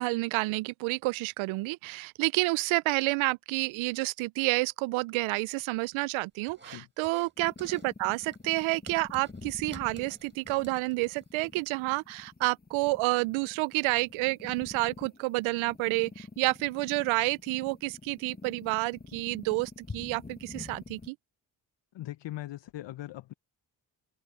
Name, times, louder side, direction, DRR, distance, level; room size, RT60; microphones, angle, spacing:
voice 1, 0.0-21.2, right 23 dB, 80° right, 0.6 m, -29 dB
sound 1, 6.5-7.3 7.6-7.9 8.2-11.5, right 3 dB, 25° right, 5.2 m, -53 dB
sound 2, 7.4-21.1, left 3 dB, 20° left, 1.5 m, -47 dB
voice 2, 21.9-23.3, left 14 dB, 65° left, 0.9 m, -40 dB
open air
hypercardioid pair, 45°, 47 cm